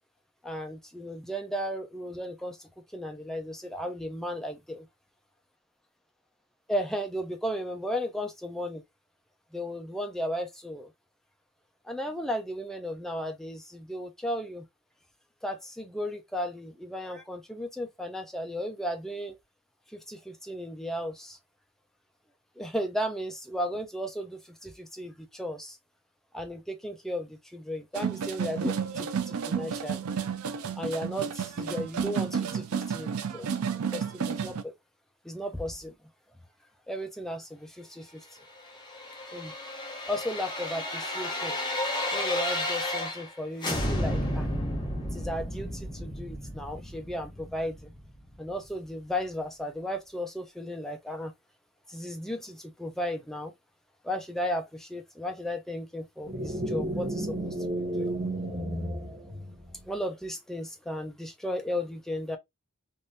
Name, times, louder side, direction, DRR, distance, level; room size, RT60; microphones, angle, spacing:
voice 1, 0.4-4.9 6.7-8.8 9.5-10.9 11.8-14.7 15.4-19.4 19.9-21.4 22.6-25.8 26.3-27.2 27.5-30.1 30.8-33.6 33.9-34.7 35.2-35.9 36.9-38.3 39.3-39.5 40.1-41.6 42.1-44.5 45.1-47.9 48.4-51.3 51.9-53.5 54.0-58.1 59.9-62.4, equal, ahead, 0.5 m, -35 dB
sound 1, 27.9-34.6, right 7 dB, 75° right, 0.5 m, -31 dB
sound 2, 38.6-43.3 43.6-48.5 48.8-48.9, left 1 dB, 20° left, 0.9 m, -32 dB
sound 3, 56.3-59.9, right 1 dB, 30° right, 1.1 m, -32 dB
3.5 x 2.6 x 2.6 m
head